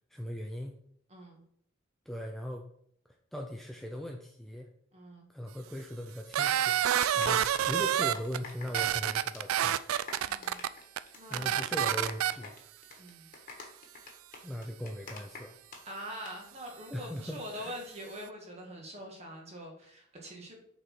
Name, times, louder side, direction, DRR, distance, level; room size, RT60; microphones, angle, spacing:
voice 1, 0.1-0.8 2.1-2.7 3.3-4.7 5.3-9.8 11.3-12.6 14.4-15.5 16.9-17.8, equal, ahead, 2 dB, 0.4 m, -39 dB
voice 2, 1.1-1.4 4.9-5.3 7.1-7.4 10.3-10.6 11.1-11.7 13.0-13.3 15.8-20.5, equal, 30° right, 0 dB, 1.7 m, -44 dB
sound 1, 6.1-9.0 9.3-9.5 9.8-15.8 16.1-16.3, left 4 dB, 40° left, 1.4 m, -46 dB
sound 2, 6.3-8.4 8.7-10.7 11.0-11.1 11.3-12.3, right 10 dB, 85° right, 0.3 m, -28 dB
6.3 x 4.2 x 4.6 m, 0.68 s
head